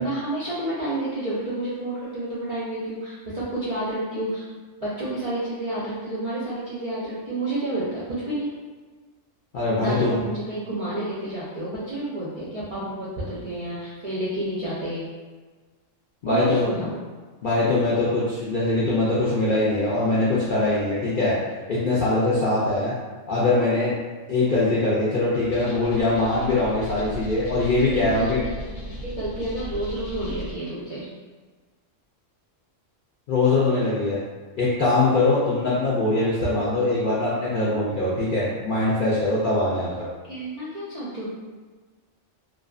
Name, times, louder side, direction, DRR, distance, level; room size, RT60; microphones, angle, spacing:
voice 1, 0.0-4.4 4.8-8.5 9.7-15.1 16.3-17.0 27.8-31.1 40.3-41.3, right 1 dB, 50° right, -10 dB, 0.4 m, -30 dB
voice 2, 9.5-10.2 16.2-16.7 17.4-21.3 21.7-22.9 23.3-23.9 24.3-28.4 33.3-34.2 34.6-40.1, left 2 dB, 60° left, -8 dB, 0.5 m, -22 dB
sound 1, 25.3-30.5, left 1 dB, 85° left, 1.0 m, -36 dB
2.6 x 2.2 x 2.3 m, 1.4 s
omnidirectional pair, 1.3 m